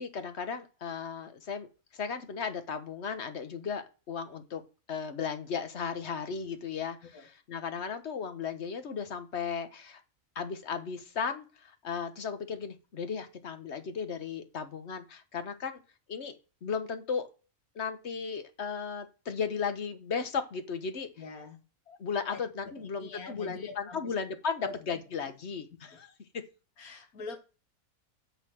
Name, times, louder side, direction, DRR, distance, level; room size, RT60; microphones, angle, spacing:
voice 1, 0.0-1.7 1.9-4.6 4.9-10.0 10.3-15.8 16.1-17.3 17.7-21.1 21.9-26.4, left 6 dB, 50° left, 1.3 m, -35 dB
voice 2, 21.2-21.6 22.3-24.1 24.6-25.0 25.9-26.0 26.8-27.4, left 4 dB, 80° left, 1.8 m, -44 dB
11.0 x 4.0 x 7.7 m
omnidirectional pair, 1.5 m